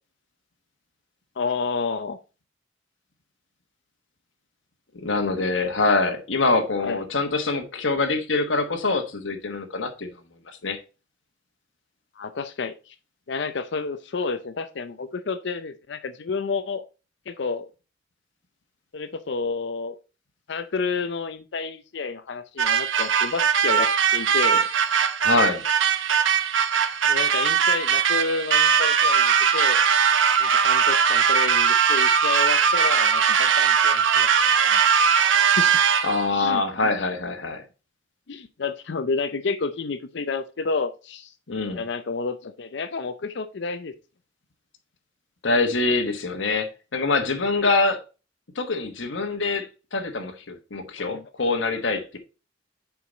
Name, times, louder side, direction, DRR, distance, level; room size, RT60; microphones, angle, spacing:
voice 1, 1.4-2.2 6.8-7.0 12.2-12.9 13.3-16.8 17.3-17.7 18.9-20.0 20.5-24.7 27.1-29.8 30.4-34.8 35.6-35.8 36.3-36.6 38.3-41.3 41.7-43.9 51.0-51.2, left 4 dB, 65° left, 0.6 m, -30 dB
voice 2, 5.0-10.1 10.6-10.8 25.2-25.6 36.0-37.6 41.5-41.8 45.4-48.0 48.5-52.2, left 3 dB, 85° left, 1.2 m, -24 dB
sound 1, 22.6-36.3, right 7 dB, 85° right, 0.8 m, -20 dB
7.0 x 4.8 x 3.9 m
head